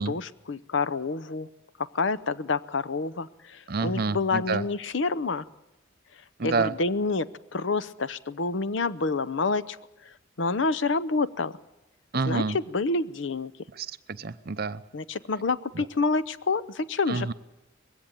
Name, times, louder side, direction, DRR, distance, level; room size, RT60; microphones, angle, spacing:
voice 1, 0.0-1.5 1.9-5.5 6.4-9.8 10.0-11.6 12.3-13.5 14.9-17.3, left 3 dB, 65° left, 16 dB, 0.7 m, -28 dB
voice 2, 3.7-4.7 6.4-6.7 12.1-12.6 13.7-14.8 15.7-15.9 17.1-17.3, right 4 dB, 50° right, 14 dB, 0.7 m, -28 dB
21.0 x 16.0 x 9.0 m, 0.97 s
head